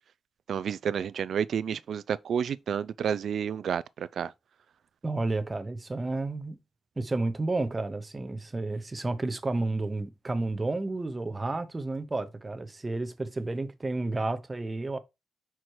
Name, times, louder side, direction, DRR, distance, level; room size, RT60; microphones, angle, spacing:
voice 1, 0.5-4.3, right 8 dB, 65° right, 0.4 m, -30 dB
voice 2, 5.0-6.6 7.0-15.0, right 2 dB, 20° right, 0.8 m, -31 dB
5.8 x 4.6 x 4.7 m
wide cardioid pair, 150°, 0 cm